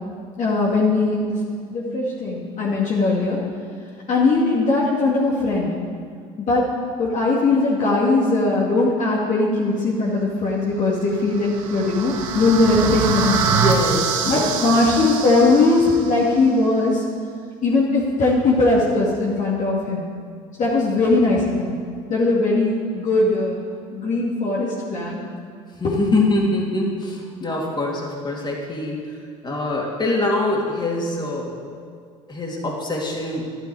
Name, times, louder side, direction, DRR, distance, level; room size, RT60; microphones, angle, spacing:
voice 1, 0.4-1.4 1.7-3.4 4.1-5.7 6.4-6.6 7.0-13.8 14.2-17.0 17.6-20.1 20.6-21.8 22.1-23.6 23.9-25.2 25.8-25.9, left 2 dB, 45° left, -4 dB, 2.2 m, -20 dB
sound 1, 11.1-16.2, right 6 dB, 80° right, 1.0 m, -25 dB
voice 2, 13.5-14.5 25.7-31.7 32.3-33.4, left 2 dB, 25° left, -2 dB, 2.9 m, -24 dB
11.5 x 11.0 x 4.8 m, 2.1 s
hypercardioid pair, 70°, 17 cm